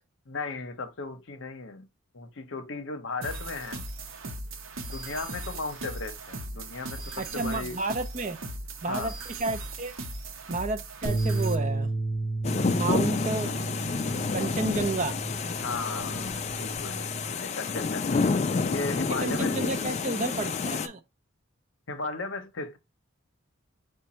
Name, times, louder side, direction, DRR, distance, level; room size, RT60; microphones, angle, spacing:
voice 1, 0.3-1.9 2.1-3.8 4.8-7.8 8.9-9.1 15.6-18.2 18.6-19.8 21.9-22.8, left 3 dB, 60° left, 0.7 m, -36 dB
sound 1, 3.2-11.6, right 2 dB, 70° right, 0.8 m, -38 dB
voice 2, 7.2-8.4 8.8-9.9 10.5-11.9 12.7-13.6 14.3-15.2 19.2-21.0, right 3 dB, 35° right, 0.5 m, -31 dB
sound 2, 11.0-17.3, right 2 dB, 15° left, 0.7 m, -32 dB
sound 3, 12.4-20.9, left 4 dB, 30° left, 0.3 m, -29 dB
5.0 x 2.2 x 4.2 m
head